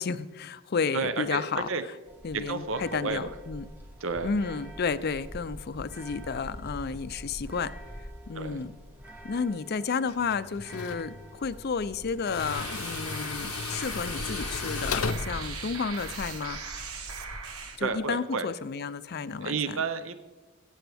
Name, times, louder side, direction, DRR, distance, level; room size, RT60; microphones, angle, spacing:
voice 1, 0.0-1.9 2.2-3.7 4.2-7.7 8.3-8.7 9.2-16.6 17.8-19.8, left 5 dB, 45° left, 14 dB, 0.4 m, -32 dB
voice 2, 0.9-1.8 2.3-3.3 4.0-4.3 8.3-8.6 17.8-18.5 19.4-20.1, right 4 dB, 60° right, 11 dB, 0.6 m, -31 dB
sound 1, 2.1-17.9, equal, 10° right, 1.0 m, -45 dB
Tools, 10.1-16.3, left 5 dB, 85° left, 0.7 m, -36 dB
sound 2, 12.4-17.8, right 5 dB, 80° right, 1.2 m, -39 dB
21.0 x 9.1 x 3.4 m, 1.3 s
head